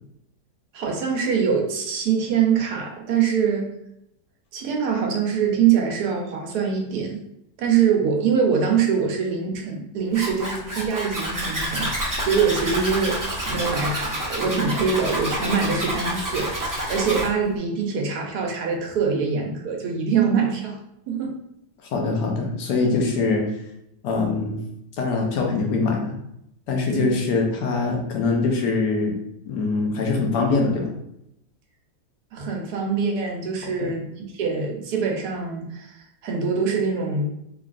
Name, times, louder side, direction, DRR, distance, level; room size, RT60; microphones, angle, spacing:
voice 1, 0.7-3.7 4.5-7.2 7.6-13.2 13.4-20.8 21.1-21.4 26.9-27.1 32.3-37.2, right 6 dB, 75° right, 1 dB, 1.2 m, -24 dB
Zipper (clothing), 10.1-17.3, right 1 dB, 25° right, 0.4 m, -28 dB
voice 2, 21.9-23.5 24.0-24.6 25.0-26.2 26.7-29.2 29.5-30.9 33.6-33.9, left 3 dB, 80° left, 1 dB, 1.3 m, -23 dB
3.6 x 3.3 x 2.4 m, 0.78 s
omnidirectional pair, 1.7 m